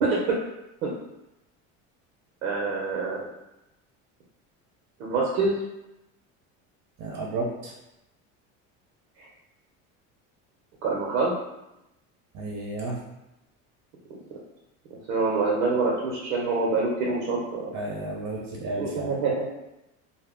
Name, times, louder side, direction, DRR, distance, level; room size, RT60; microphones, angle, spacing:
voice 1, 0.0-0.3 0.8-0.9 2.4-3.3 5.0-5.6 10.8-11.3 15.1-17.7 18.8-19.5, right 3 dB, 85° right, -3 dB, 0.7 m, -25 dB
voice 2, 7.0-7.7 12.3-13.0 17.7-19.1, right 2 dB, 45° right, -2 dB, 0.8 m, -32 dB
2.1 x 2.0 x 3.5 m, 0.90 s
supercardioid pair, 85°, 39 cm